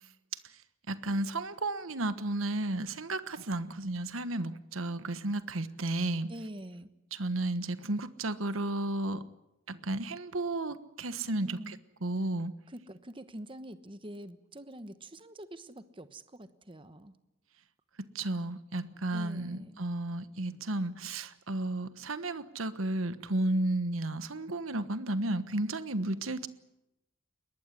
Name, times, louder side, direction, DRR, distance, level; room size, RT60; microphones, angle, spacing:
voice 1, 0.9-6.3 7.1-9.2 9.7-11.7 12.0-12.5 18.0-26.5, right 2 dB, 80° right, 13 dB, 1.3 m, -33 dB
voice 2, 6.3-6.9 11.4-11.8 12.7-17.2 19.1-19.8, right 1 dB, 25° right, 12 dB, 1.1 m, -45 dB
22.0 x 19.0 x 9.8 m, 0.90 s
head